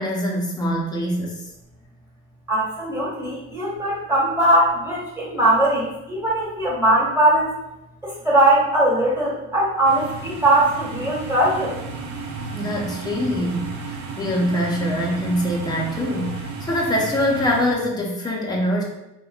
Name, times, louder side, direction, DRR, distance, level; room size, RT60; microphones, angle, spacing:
voice 1, 0.0-1.4 12.5-18.8, equal, 15° left, -2 dB, 0.6 m, -24 dB
voice 2, 2.5-7.5 8.0-11.8, right 1 dB, 10° right, -6 dB, 1.5 m, -20 dB
sound 1, 9.9-17.7, right 3 dB, 65° right, 0.6 m, -33 dB
3.4 x 2.2 x 2.3 m, 0.94 s
cardioid pair, 90°, 30 cm